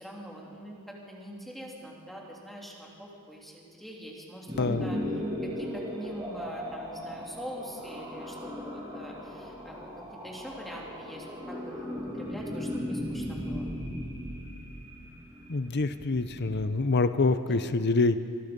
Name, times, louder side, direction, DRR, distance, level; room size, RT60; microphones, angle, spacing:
voice 1, 0.0-5.0 5.4-9.9 10.2-11.9 12.1-13.8 17.5-17.7, equal, ahead, -3 dB, 3.4 m, -44 dB
sound 1, 4.5-16.6, equal, 15° right, 5.6 m, -37 dB
voice 2, 4.6-4.9 15.5-18.2, left 3 dB, 50° left, 11 dB, 0.8 m, -26 dB
26.0 x 21.0 x 5.3 m, 2.2 s
head